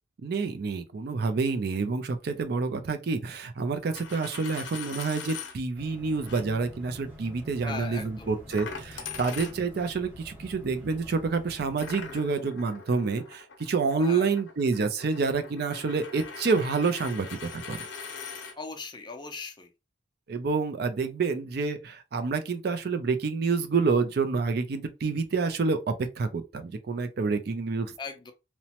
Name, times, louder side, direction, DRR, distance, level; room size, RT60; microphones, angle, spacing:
voice 1, 0.2-17.3 17.5-17.8 20.3-27.9, right 4 dB, 55° right, 0.4 m, -28 dB
Coin (dropping), 3.8-5.5 6.2-6.4 8.5-9.9 11.8-18.5, left 5 dB, 75° left, 0.6 m, -41 dB
sound 1, 5.8-12.3, left 1 dB, 10° right, 1.2 m, -47 dB
voice 2, 7.6-8.4 14.0-14.3 18.6-19.7 28.0-28.3, left 4 dB, 25° left, 0.5 m, -39 dB
3.0 x 2.1 x 2.8 m
head